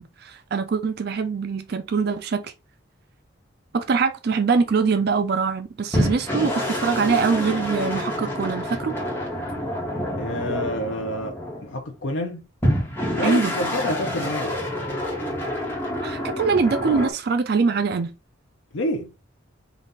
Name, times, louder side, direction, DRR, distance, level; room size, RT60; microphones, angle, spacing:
voice 1, 0.0-2.5 3.7-9.0 13.2-13.5 16.0-18.1, right 5 dB, 55° right, 0.4 m, -23 dB
sound 1, 5.9-11.8 12.6-17.1, equal, 10° left, 1.1 m, -27 dB
voice 2, 10.2-12.5 13.2-14.6 18.7-19.1, left 1 dB, 70° left, 0.6 m, -28 dB
3.9 x 2.4 x 3.8 m
head